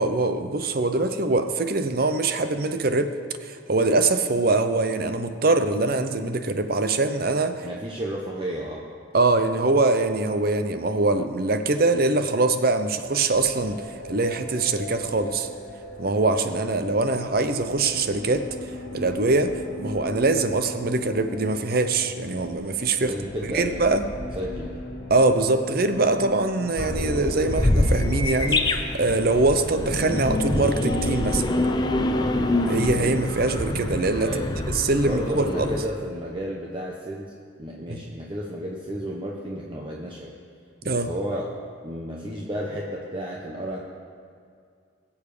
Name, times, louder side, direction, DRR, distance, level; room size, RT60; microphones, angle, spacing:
voice 1, 0.0-3.1 3.4-7.7 9.1-15.5 16.0-18.5 18.9-23.1 23.5-24.1 25.1-31.4 32.7-34.3 34.7-35.7 37.9-38.0 40.8-41.1, right 3 dB, 50° right, 9 dB, 0.7 m, -23 dB
voice 2, 7.6-8.8 23.0-23.8 24.4-24.8 34.2-34.5 35.0-37.3 37.6-40.3 40.8-41.5 41.8-43.8, equal, 25° right, -2 dB, 0.9 m, -32 dB
sound 1, 13.3-33.1, left 1 dB, 50° left, 2.0 m, -38 dB
sound 2, 26.8-35.8, left 1 dB, 20° left, 0.6 m, -25 dB
21.5 x 7.2 x 5.0 m, 2.3 s
head